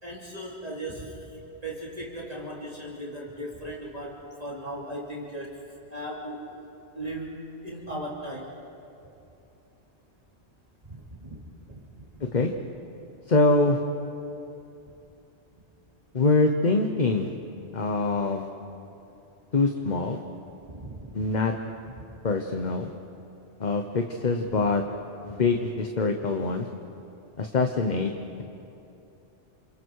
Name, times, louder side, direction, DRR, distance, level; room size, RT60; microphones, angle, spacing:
voice 1, 0.0-1.3 1.6-5.6 5.9-6.5 6.9-8.5 10.9-11.9 20.7-21.3 24.6-24.7, right 1 dB, 35° right, -4 dB, 3.2 m, -37 dB
voice 2, 13.3-13.8 16.1-17.3 17.7-18.5 19.5-20.2 21.1-21.5 22.2-22.9 23.6-24.8 25.2-26.7 27.4-28.1, left 3 dB, 40° left, 4 dB, 1.1 m, -24 dB
28.5 x 28.0 x 4.7 m, 2.9 s
omnidirectional pair, 1.2 m